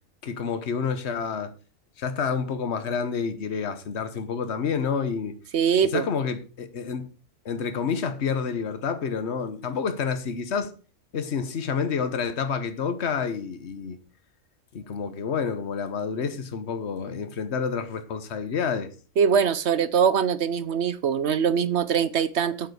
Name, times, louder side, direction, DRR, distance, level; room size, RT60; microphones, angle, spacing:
voice 1, 0.2-1.5 2.0-5.4 5.8-7.1 7.4-10.7 11.1-14.0 14.7-18.9, left 6 dB, 55° left, 1.4 m, -29 dB
voice 2, 5.5-6.0 19.2-22.7, right 7 dB, 60° right, 1.0 m, -22 dB
8.5 x 8.4 x 6.4 m
omnidirectional pair, 1.4 m